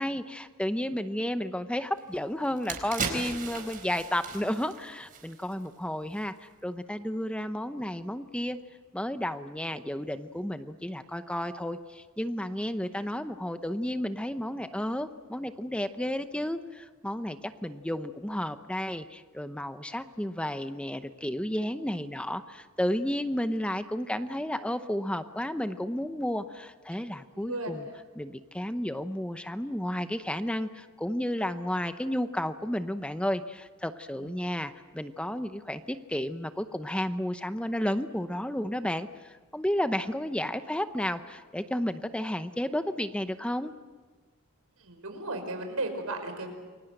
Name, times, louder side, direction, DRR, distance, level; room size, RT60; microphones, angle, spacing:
voice 1, 0.0-8.6 8.9-27.9 28.2-43.7, left 1 dB, 5° left, 10 dB, 0.8 m, -32 dB
sound 1, 2.0-2.1 2.5-5.7 6.0-6.2, right 4 dB, 40° right, 4.2 m, -37 dB
voice 2, 27.0-27.8 34.2-34.3 44.8-46.5, right 2 dB, 90° right, 5 dB, 5.4 m, -35 dB
28.5 x 23.0 x 7.9 m, 1.4 s
head